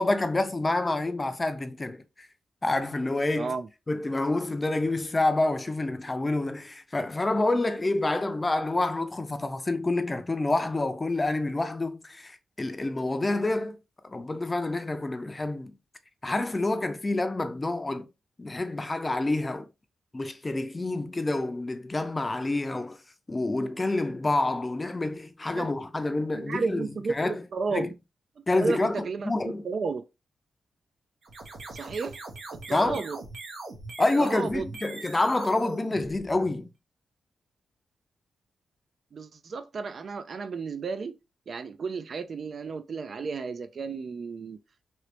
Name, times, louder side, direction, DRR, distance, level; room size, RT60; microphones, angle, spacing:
voice 1, 0.0-2.3 2.6-3.5 3.9-13.8 14.0-15.8 16.2-18.1 18.4-19.7 20.1-23.0 23.3-27.4 27.7-27.9 28.5-29.7 32.7-33.0 34.0-36.7, left 2 dB, 25° left, 0.5 m, -28 dB
voice 2, 3.4-3.7 25.5-25.7 26.3-27.9 28.4-30.0 31.7-32.2 32.5-33.2 34.2-34.7 39.1-41.2 41.5-44.6, right 4 dB, 60° right, 0.4 m, -33 dB
sound 1, 31.2-36.7, right 2 dB, 75° right, 1.0 m, -41 dB
3.1 x 2.9 x 2.9 m
cardioid pair, 80°, 0 cm